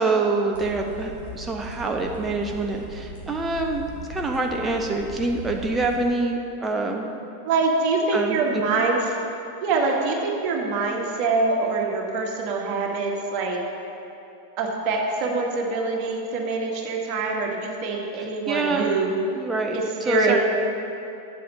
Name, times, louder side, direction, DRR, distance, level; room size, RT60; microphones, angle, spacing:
voice 1, 0.0-7.1 8.1-8.4 18.5-18.9 19.4-20.4, right 3 dB, 15° right, 2 dB, 0.8 m, -26 dB
sound 1, 0.5-6.1, equal, 65° left, 2.6 m, -39 dB
voice 2, 7.4-9.0 9.6-13.6 14.6-19.1 19.7-20.3, right 3 dB, 40° right, -1 dB, 1.8 m, -24 dB
8.1 x 7.6 x 7.1 m, 2.8 s
figure-of-eight pair, 90°, 0 cm